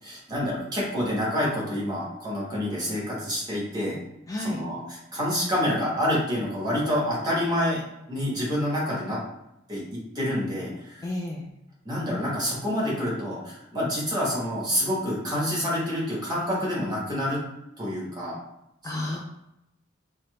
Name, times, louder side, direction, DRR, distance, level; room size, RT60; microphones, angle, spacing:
voice 1, 0.0-4.0 4.4-7.8 8.1-9.2 9.7-11.1 11.8-17.4 17.8-18.4 18.9-19.1, equal, 20° right, -5 dB, 1.3 m, -28 dB
voice 2, 4.3-4.7 11.0-11.5 18.8-19.2, left 1 dB, 20° left, -2 dB, 0.4 m, -31 dB
4.1 x 2.1 x 3.2 m, 0.86 s
head